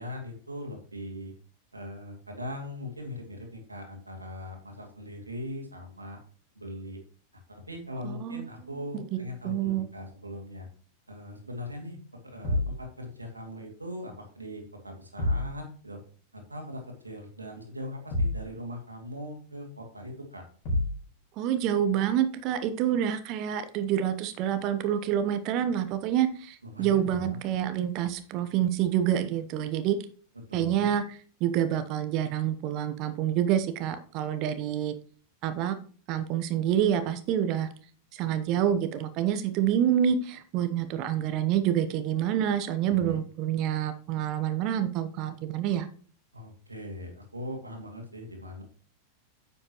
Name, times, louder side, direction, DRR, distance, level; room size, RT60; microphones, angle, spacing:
voice 1, 0.0-1.3 1.7-6.2 6.5-7.0 7.3-10.7 11.1-12.0 12.2-16.0 16.3-20.4 26.6-27.4 30.3-30.9 42.9-43.2 46.3-48.6, left 1 dB, 80° right, 2 dB, 2.4 m, -40 dB
voice 2, 8.0-8.4 8.9-9.9 21.4-30.0 30.5-31.0 31.4-34.9 35.4-35.8 36.1-37.7 38.1-45.9, right 10 dB, 40° right, 11 dB, 0.9 m, -27 dB
sound 1, 12.4-12.8 15.2-15.5 18.1-18.5 20.6-21.0, left 1 dB, 45° left, 4.1 m, -27 dB
9.7 x 7.8 x 3.0 m, 0.43 s
figure-of-eight pair, 90°, 0 cm